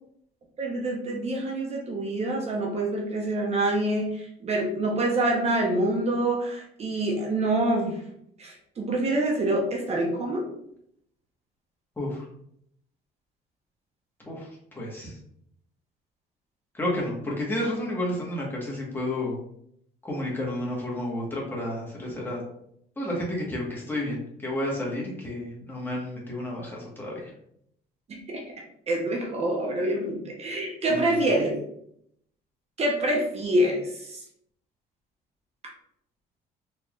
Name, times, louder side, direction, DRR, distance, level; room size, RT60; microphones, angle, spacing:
voice 1, 0.6-8.0 8.4-10.4 28.1-28.4 28.9-31.6 32.8-34.2, right 1 dB, 40° right, -1 dB, 0.8 m, -26 dB
voice 2, 14.3-15.2 16.7-19.4 20.0-22.4 23.0-27.3 30.9-31.0, left 1 dB, 10° left, -4 dB, 1.3 m, -31 dB
4.1 x 3.3 x 2.4 m, 0.72 s
cardioid pair, 110°, 17 cm